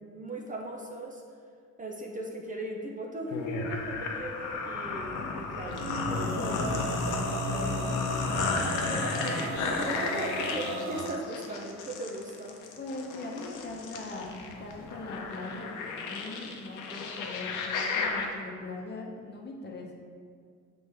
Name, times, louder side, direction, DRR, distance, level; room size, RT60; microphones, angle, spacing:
voice 1, 0.0-1.2 1.8-6.6 8.9-12.6, right 1 dB, 25° right, 0 dB, 0.7 m, -38 dB
sound 1, 3.3-18.3, left 4 dB, 90° left, 0.7 m, -33 dB
Male singing, 5.8-11.1, right 2 dB, 70° right, 0.9 m, -36 dB
voice 2, 6.1-6.7 7.2-8.0 12.8-19.9, left 2 dB, 35° left, -1 dB, 0.9 m, -41 dB
6.4 x 4.3 x 3.5 m, 2.1 s
cardioid pair, 90°, 30 cm